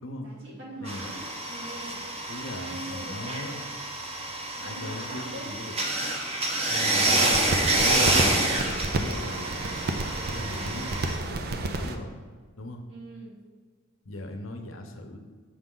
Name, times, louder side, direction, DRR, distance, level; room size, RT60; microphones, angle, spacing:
voice 1, 0.2-2.0 2.4-3.7 4.6-5.5 6.7-8.1 12.9-13.4, right 1 dB, 70° right, -4 dB, 2.1 m, -42 dB
voice 2, 0.8-1.1 2.3-3.5 4.6-5.7 6.7-7.3 7.7-9.7 10.3-12.2 12.6-12.9 14.0-15.2, left 1 dB, 75° left, 5 dB, 0.9 m, -38 dB
sound 1, 0.9-11.2, right 1 dB, 30° right, 0.9 m, -28 dB
sound 2, 7.0-12.0, right 2 dB, 50° right, 0.5 m, -31 dB
7.2 x 6.6 x 3.8 m, 1.5 s
head